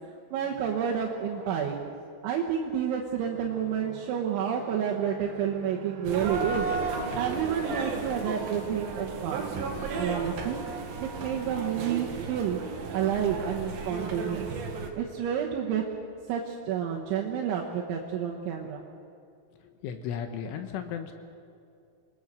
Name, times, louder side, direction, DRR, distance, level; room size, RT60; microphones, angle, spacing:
voice 1, 0.3-1.9 2.2-9.4 9.9-10.6 11.0-12.6 12.9-14.5 15.0-16.0 16.3-18.8, right 8 dB, 75° right, -1 dB, 3.5 m, -30 dB
sound 1, 6.0-14.9, right 4 dB, 55° right, 3.1 m, -34 dB
voice 2, 19.5-21.1, left 8 dB, 75° left, 7 dB, 3.5 m, -35 dB
26.5 x 20.0 x 6.6 m, 2.4 s
omnidirectional pair, 6.0 m